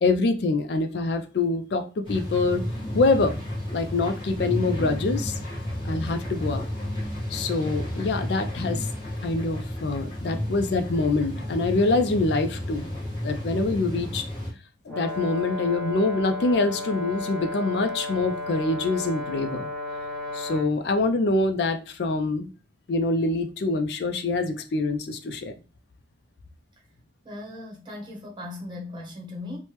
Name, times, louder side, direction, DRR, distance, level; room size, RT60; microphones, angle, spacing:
voice 1, 0.0-2.6 2.9-3.4 3.7-5.4 5.8-6.6 7.3-8.9 9.2-12.9 13.2-14.2 14.9-19.7 20.3-22.5 22.9-25.5, left 3 dB, 75° left, 0.4 m, -25 dB
sound 1, 2.0-14.5, left 1 dB, 30° left, 1.2 m, -32 dB
Brass instrument, 14.9-20.7, left 2 dB, 5° left, 0.8 m, -33 dB
voice 2, 27.2-29.6, left 2 dB, 25° right, 0.8 m, -38 dB
3.2 x 2.1 x 2.9 m
head